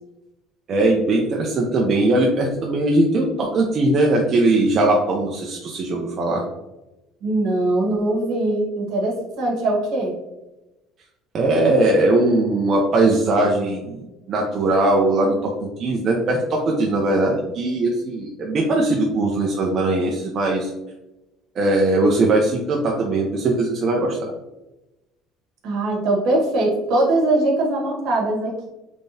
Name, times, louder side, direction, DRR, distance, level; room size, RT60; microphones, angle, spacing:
voice 1, 0.7-6.4 11.3-20.7 21.6-24.3, right 2 dB, 30° right, -1 dB, 0.5 m, -20 dB
voice 2, 7.2-10.1 25.6-28.7, right 2 dB, 60° right, -2 dB, 1.2 m, -21 dB
3.5 x 3.4 x 2.6 m, 0.99 s
cardioid pair, 165°, 0 cm